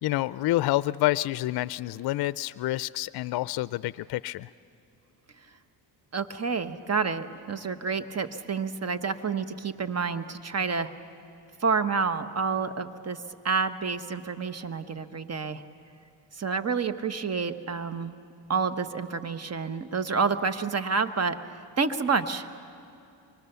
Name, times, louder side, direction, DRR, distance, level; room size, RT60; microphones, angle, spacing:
voice 1, 0.0-4.5, left 16 dB, 60° left, 17 dB, 0.5 m, -28 dB
voice 2, 6.1-10.9 11.6-13.2 13.4-15.6 16.3-18.1 18.5-22.5, right 5 dB, 35° right, 11 dB, 1.2 m, -29 dB
25.5 x 24.5 x 6.9 m, 2.5 s
cardioid pair, 75°, 44 cm